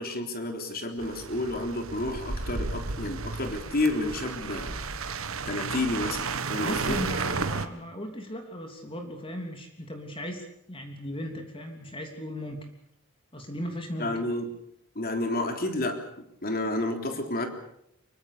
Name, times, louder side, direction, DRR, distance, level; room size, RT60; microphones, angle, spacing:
voice 1, 0.0-4.7 5.5-7.0 14.0-14.5 15.0-16.0 16.4-17.5, left 2 dB, 45° left, 5 dB, 3.6 m, -30 dB
sound 1, 1.0-7.7, right 4 dB, 65° right, 1.5 m, -33 dB
voice 2, 6.6-12.7 13.3-14.2, equal, 25° left, 4 dB, 3.2 m, -37 dB
24.5 x 23.0 x 6.8 m, 0.74 s
head